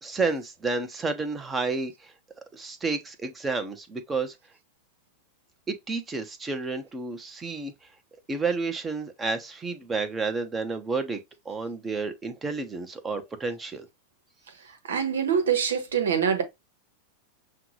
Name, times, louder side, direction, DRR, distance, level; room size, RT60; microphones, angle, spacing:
voice 1, 0.0-2.1 2.5-4.3 5.7-7.7 8.3-11.2 11.4-13.9, right 4 dB, 20° right, 1.0 m, -30 dB
voice 2, 14.9-16.4, right 7 dB, 80° right, 1.2 m, -24 dB
5.8 x 2.4 x 3.1 m
hypercardioid pair, 105°, 0 cm